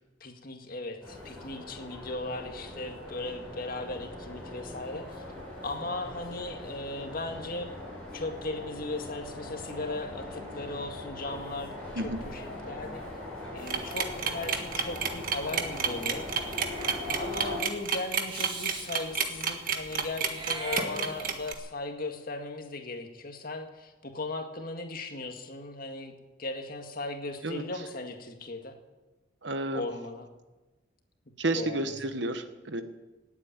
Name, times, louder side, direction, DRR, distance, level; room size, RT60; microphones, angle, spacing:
voice 1, 0.2-5.2 5.6-7.7 8.1-13.0 13.5-16.6 17.1-26.1 26.4-28.8 29.7-30.3 31.5-32.1, left 2 dB, 50° left, 4 dB, 2.0 m, -37 dB
sound 1, 1.0-17.6, left 1 dB, 5° left, 7.9 m, -41 dB
sound 2, 13.7-21.5, right 7 dB, 50° right, 1.6 m, -30 dB
Meow / Hiss, 16.4-17.0 18.3-18.9 20.2-21.5, right 2 dB, 25° right, 2.2 m, -40 dB
voice 2, 29.4-29.8 31.4-32.8, right 2 dB, 65° right, 9 dB, 1.3 m, -31 dB
18.0 x 8.8 x 8.9 m, 1.1 s
head